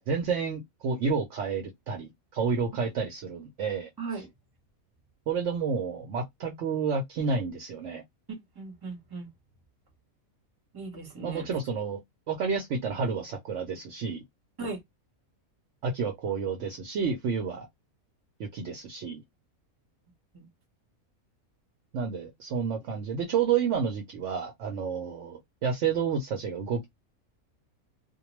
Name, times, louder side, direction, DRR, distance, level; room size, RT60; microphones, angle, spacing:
voice 1, 0.1-3.9 5.3-8.0 11.2-12.0 12.3-14.2 15.8-17.7 18.4-19.2 21.9-26.9, right 5 dB, 65° right, 0.8 m, -30 dB
voice 2, 4.0-4.3 8.3-9.3 10.7-11.5 14.6-14.8 20.3-20.4, right 4 dB, 20° right, 0.8 m, -37 dB
2.2 x 2.2 x 2.9 m
omnidirectional pair, 1.5 m